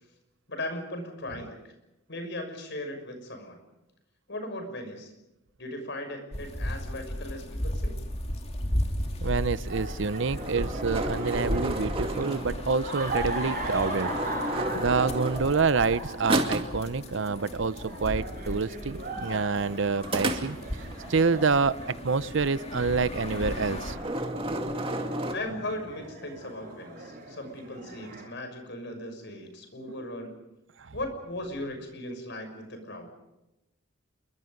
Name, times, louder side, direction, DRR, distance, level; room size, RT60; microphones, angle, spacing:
voice 1, 0.5-1.6 2.1-3.6 4.3-5.1 5.6-7.9 25.3-30.4 30.9-33.1, left 1 dB, 60° left, 6 dB, 6.2 m, -37 dB
sound 1, 6.3-23.9, equal, 30° left, 2.5 m, -36 dB
voice 2, 9.2-14.1 14.7-20.6 21.1-21.8 22.0-24.0 30.9-31.0, right 4 dB, 60° right, 16 dB, 0.7 m, -27 dB
sound 2, 9.6-28.2, right 1 dB, 45° right, 6.8 m, -39 dB
sound 3, 10.1-12.9 13.8-16.0 16.2-16.9 20.0-21.0 23.3-23.5 23.8-25.3, right 1 dB, 25° right, 2.3 m, -32 dB
28.0 x 23.5 x 5.3 m, 0.95 s
head